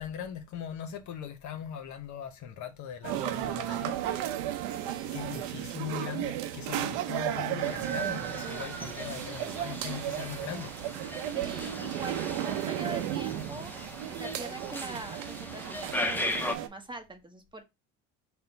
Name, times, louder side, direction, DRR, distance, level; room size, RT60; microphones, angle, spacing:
voice 1, 0.0-4.0 5.1-10.7, left 9 dB, 50° left, 0.8 m, -40 dB
sound 1, 3.0-16.7, right 12 dB, 65° right, 0.7 m, -34 dB
voice 2, 4.6-5.2 11.3-13.7 14.1-17.6, right 2 dB, 15° right, 0.9 m, -43 dB
sound 2, 7.6-16.6, left 1 dB, 5° left, 0.5 m, -38 dB
4.2 x 2.2 x 3.9 m
hypercardioid pair, 80°, 37 cm